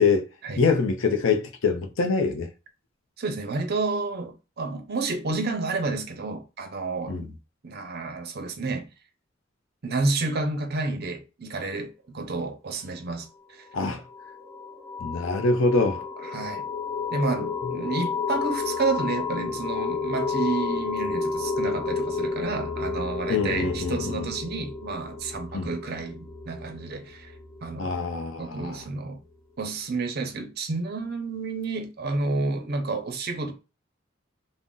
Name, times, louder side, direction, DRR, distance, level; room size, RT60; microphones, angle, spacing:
voice 1, 0.6-2.5 7.1-7.3 13.7-14.0 15.0-16.0 23.3-24.3 25.5-25.7 27.8-28.8, left 4 dB, 90° left, 0.6 m, -24 dB
voice 2, 3.2-7.3 7.6-8.9 9.8-13.6 16.2-16.6 17.1-27.3 27.6-27.9 28.4-29.2 29.6-33.5, right 3 dB, 55° right, 0.6 m, -30 dB
sound 1, 13.7-28.1, left 4 dB, 15° left, 0.6 m, -31 dB
2.6 x 2.1 x 3.7 m
head